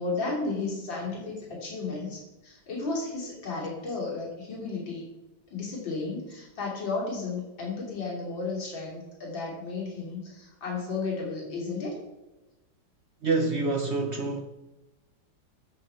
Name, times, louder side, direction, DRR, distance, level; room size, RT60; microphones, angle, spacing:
voice 1, 0.0-5.1 5.5-12.0, left 3 dB, 90° left, 4.0 m, -33 dB
voice 2, 13.2-14.4, right 3 dB, 50° right, 0.8 m, -26 dB
11.0 x 8.0 x 5.6 m
omnidirectional pair, 2.0 m